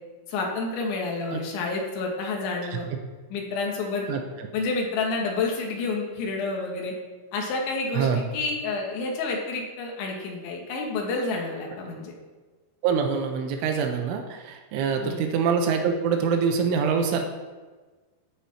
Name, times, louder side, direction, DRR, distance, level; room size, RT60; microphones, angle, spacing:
voice 1, 0.3-2.9 3.3-4.1 4.5-6.9 7.3-12.1 15.0-15.2, left 3 dB, 75° left, 0 dB, 3.8 m, -29 dB
voice 2, 12.8-17.2, right 6 dB, 80° right, 4 dB, 3.3 m, -24 dB
10.0 x 9.1 x 4.3 m, 1.3 s
omnidirectional pair, 5.7 m